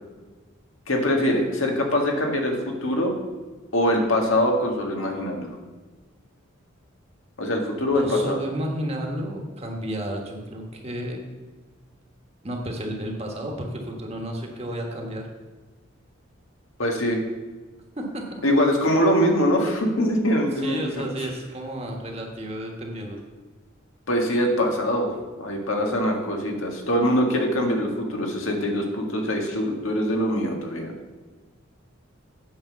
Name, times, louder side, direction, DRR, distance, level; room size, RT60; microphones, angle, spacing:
voice 1, 0.9-3.1 3.7-5.5 7.4-8.4 16.8-17.2 18.4-21.0 24.1-30.9, equal, 80° left, 2 dB, 1.7 m, -23 dB
voice 2, 7.9-11.2 12.4-15.3 18.0-18.2 20.6-23.2, equal, 30° right, 1 dB, 1.4 m, -32 dB
8.7 x 5.2 x 6.8 m, 1.3 s
head